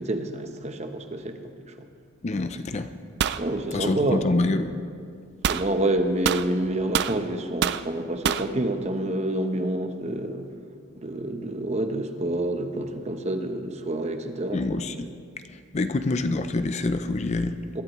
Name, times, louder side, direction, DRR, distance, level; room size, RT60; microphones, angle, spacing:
voice 1, 0.0-1.4 1.8-1.9 3.4-4.3 5.5-10.5 10.9-14.8 17.7-17.8, right 1 dB, 35° right, 6 dB, 0.8 m, -28 dB
voice 2, 2.2-2.9 3.7-4.7 14.5-15.1 15.7-17.6, left 2 dB, 35° left, 9 dB, 0.4 m, -26 dB
sound 1, 3.2-3.4 5.4-5.7 6.2-7.2 7.6-7.9 8.2-8.5, right 8 dB, 55° right, 0.3 m, -25 dB
21.5 x 12.0 x 3.1 m, 2.2 s
head